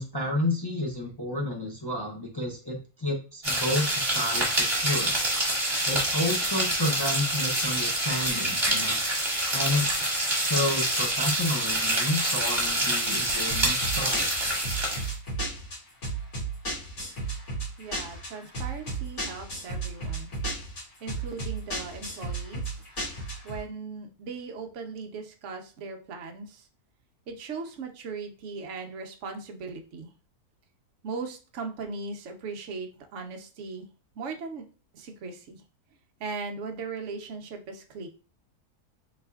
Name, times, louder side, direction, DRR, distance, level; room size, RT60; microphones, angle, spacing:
voice 1, 0.0-5.1 5.9-9.0 9.5-10.0 10.3-14.3, left 1 dB, 30° left, -1 dB, 0.4 m, -31 dB
sound 1, 3.4-15.1, right 1 dB, 15° right, 1.6 m, -26 dB
sound 2, 13.5-23.6, right 2 dB, 60° left, 2.8 m, -34 dB
voice 2, 17.8-20.3 21.0-22.6 23.4-26.7 27.3-30.1 31.0-33.9 34.2-34.7 34.9-35.6 36.2-38.1, right 4 dB, 55° right, 5 dB, 1.0 m, -38 dB
4.2 x 4.0 x 2.3 m, 0.36 s
omnidirectional pair, 1.7 m